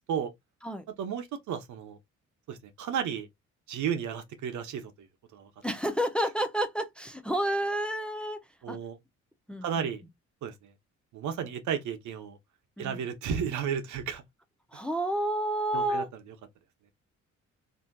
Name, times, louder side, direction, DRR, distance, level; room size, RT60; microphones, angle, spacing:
voice 1, 1.0-2.0 2.5-3.3 3.7-5.1 5.3-5.5 8.6-9.0 9.6-10.0 10.4-10.7 11.1-12.4 12.8-14.2 14.7-14.8 15.7-16.0, right 8 dB, 75° right, 0.9 m, -33 dB
voice 2, 5.6-8.4 8.7-8.8 9.5-9.9 12.8-13.0 14.7-16.1, right 1 dB, 5° left, 0.6 m, -30 dB
3.9 x 2.7 x 2.3 m
cardioid pair, 90°, 30 cm